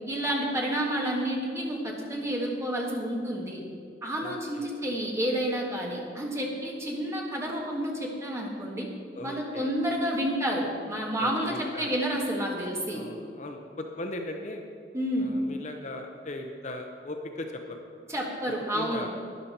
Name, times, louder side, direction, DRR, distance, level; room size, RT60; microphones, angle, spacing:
voice 1, 0.1-3.6 4.0-8.9 9.2-13.0 14.9-15.3 18.1-19.1, equal, 15° right, -2 dB, 1.6 m, -30 dB
voice 2, 4.2-4.8 9.1-9.7 11.2-12.0 12.9-14.6 15.2-17.8 18.5-19.1, left 1 dB, 40° left, 4 dB, 0.7 m, -38 dB
12.0 x 10.0 x 4.3 m, 2.3 s
head